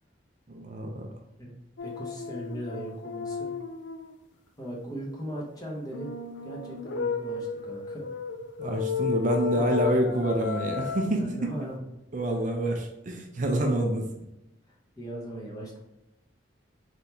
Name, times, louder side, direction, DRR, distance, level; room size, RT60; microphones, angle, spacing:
voice 1, 0.5-1.1 8.6-11.5 12.1-14.1, right 1 dB, 40° right, 1 dB, 0.5 m, -27 dB
sound 1, 1.8-4.1 5.9-11.1, left 6 dB, 70° left, 0.4 m, -33 dB
voice 2, 1.8-3.5 4.6-6.1 6.4-8.1 9.5-9.7 11.1-11.8 15.0-15.8, right 1 dB, 20° left, -3 dB, 0.9 m, -38 dB
3.9 x 3.3 x 2.9 m, 0.92 s
head